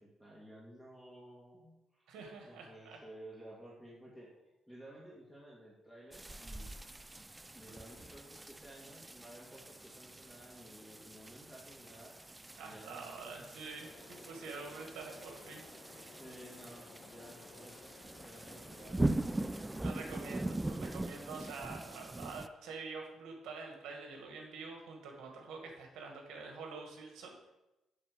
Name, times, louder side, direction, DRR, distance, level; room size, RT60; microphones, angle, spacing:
voice 1, 0.0-2.1 2.4-4.3 4.7-6.7 7.5-12.1 12.6-13.5 16.2-17.9 18.2-19.0, right 1 dB, ahead, -5 dB, 2.3 m, -54 dB
voice 2, 2.1-3.0 12.6-16.2 19.8-27.5, right 4 dB, 85° right, 2 dB, 2.0 m, -47 dB
sound 1, 6.1-22.5, right 2 dB, 15° right, 0.4 m, -42 dB
sound 2, 13.8-20.6, left 3 dB, 65° left, 1.6 m, -56 dB
8.8 x 4.3 x 6.8 m, 0.98 s
cardioid pair, 90°, 0 cm